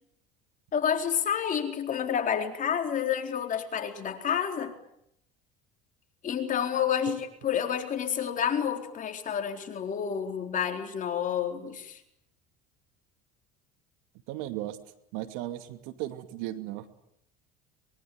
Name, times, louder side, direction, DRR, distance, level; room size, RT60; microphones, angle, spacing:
voice 1, 0.7-4.7 6.2-12.0, left 8 dB, 40° left, 5 dB, 4.2 m, -29 dB
voice 2, 14.3-14.8 15.1-16.8, right 14 dB, 80° right, 10 dB, 2.5 m, -36 dB
23.5 x 23.0 x 9.6 m, 0.76 s
supercardioid pair, 100°, 20 cm